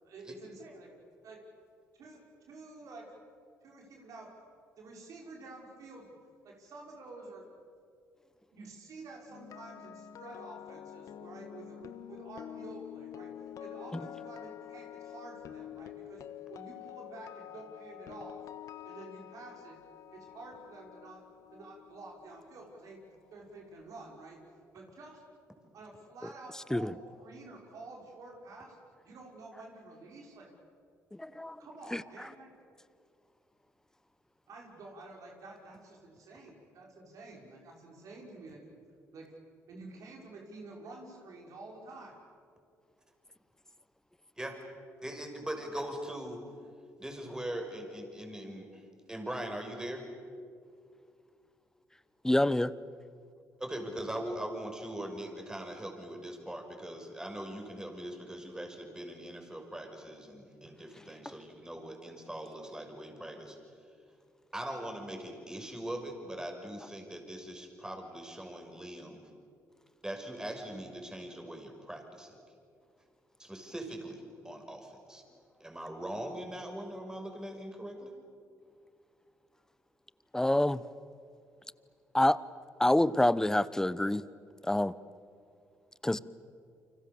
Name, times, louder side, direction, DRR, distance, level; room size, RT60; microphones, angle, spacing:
voice 1, 0.0-0.9 1.2-1.4 2.0-3.1 3.6-4.3 4.8-6.1 6.4-7.5 8.5-13.3 13.6-18.4 18.8-19.8 20.1-21.3 21.5-23.0 23.3-24.4 24.7-25.2 25.7-28.8 29.0-30.5 31.2-32.5 34.5-38.8 39.1-39.3 39.7-42.2, right 2 dB, 65° right, 0 dB, 6.0 m, -49 dB
sound 1, 9.3-23.4 23.6-23.9, left 10 dB, 65° left, 1.4 m, -47 dB
voice 2, 31.2-31.5 31.9-32.0 52.2-52.7 80.3-80.8 82.1-82.4 82.8-84.2 84.7-84.9 86.0-86.2, left 1 dB, 10° left, 17 dB, 1.0 m, -26 dB
voice 3, 45.0-46.4 47.0-48.7 49.1-50.0 53.6-63.6 64.5-69.2 70.0-72.4 73.4-75.2 75.6-78.1, right 1 dB, 10° right, 4 dB, 6.3 m, -41 dB
30.0 x 25.5 x 7.1 m, 2.3 s
supercardioid pair, 70°, 6 cm